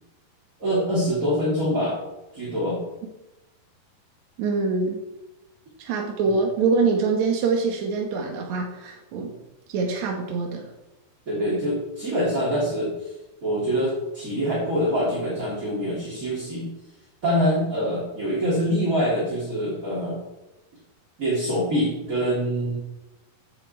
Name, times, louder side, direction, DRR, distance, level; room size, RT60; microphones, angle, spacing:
voice 1, 0.6-2.0 2.3-2.9 6.2-6.4 11.3-13.1 13.4-16.7 17.2-20.2 21.2-22.8, equal, 25° right, -6 dB, 3.0 m, -25 dB
voice 2, 4.4-5.0 5.8-9.3 9.7-10.7, right 4 dB, 60° right, 1 dB, 2.2 m, -24 dB
14.5 x 9.5 x 4.4 m, 1.0 s
omnidirectional pair, 4.5 m